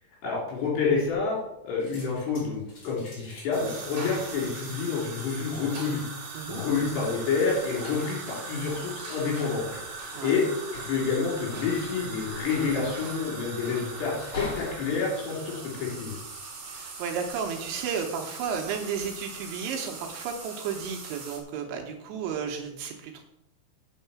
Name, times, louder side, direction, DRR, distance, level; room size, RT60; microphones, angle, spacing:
voice 1, 0.2-1.4 1.6-6.0 6.5-9.6 10.2-10.5 10.7-16.1, left 5 dB, 60° left, -3 dB, 5.4 m, -28 dB
sound 1, 1.0-1.5 1.8-16.4 16.9-17.3, left 2 dB, 35° left, 3.3 m, -45 dB
sound 2, 3.5-21.4, right 3 dB, 40° right, 2.5 m, -40 dB
voice 2, 16.7-23.2, right 6 dB, 80° right, 3 dB, 3.1 m, -33 dB
8.8 x 6.5 x 7.0 m, 0.85 s
omnidirectional pair, 5.8 m